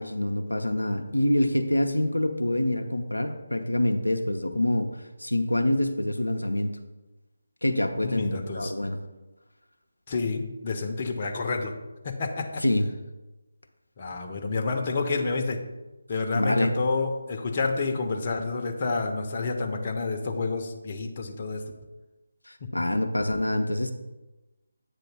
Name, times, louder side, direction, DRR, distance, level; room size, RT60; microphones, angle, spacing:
voice 1, 0.0-4.9 5.2-6.7 7.6-9.1 12.6-12.9 16.4-16.7 22.5-23.9, left 1 dB, 85° left, 5 dB, 0.6 m, -26 dB
voice 2, 8.0-8.7 10.1-11.7 12.0-12.6 14.0-15.6 16.1-21.6 22.6-22.7, left 3 dB, 35° left, 2 dB, 0.8 m, -29 dB
8.2 x 3.0 x 5.8 m, 1.1 s
figure-of-eight pair, 155°, 0 cm